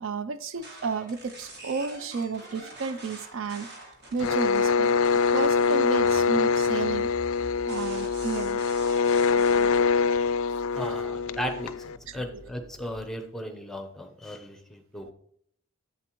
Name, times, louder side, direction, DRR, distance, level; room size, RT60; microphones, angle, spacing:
voice 1, 0.0-3.7 4.1-4.9 5.3-7.1 7.6-8.6 9.5-10.2 12.1-12.2 15.0-15.1, right 5 dB, 65° right, 0.4 m, -32 dB
sound 1, 0.5-9.8, right 2 dB, 50° right, 1.9 m, -47 dB
sound 2, 4.2-12.0, left 5 dB, 70° left, 0.3 m, -24 dB
sound 3, 5.9-12.9, left 1 dB, 85° right, 3.5 m, -48 dB
voice 2, 10.7-15.1, equal, ahead, 0.7 m, -36 dB
8.2 x 7.6 x 3.0 m
head